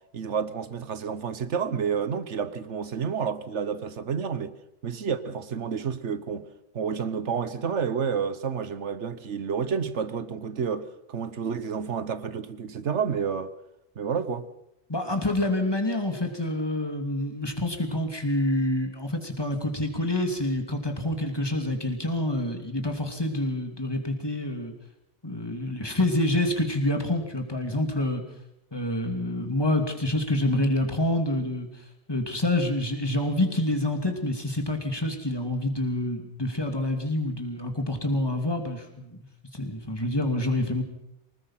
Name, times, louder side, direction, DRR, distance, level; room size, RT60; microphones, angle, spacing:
voice 1, 0.1-4.5 4.8-6.5 6.7-13.5 14.0-14.5, right 6 dB, 75° right, 1.4 m, -30 dB
voice 2, 14.9-24.7 25.2-28.2 28.7-31.7 32.1-39.2 39.5-40.8, left 1 dB, 20° left, 2.8 m, -27 dB
25.0 x 19.5 x 5.8 m
omnidirectional pair, 1.2 m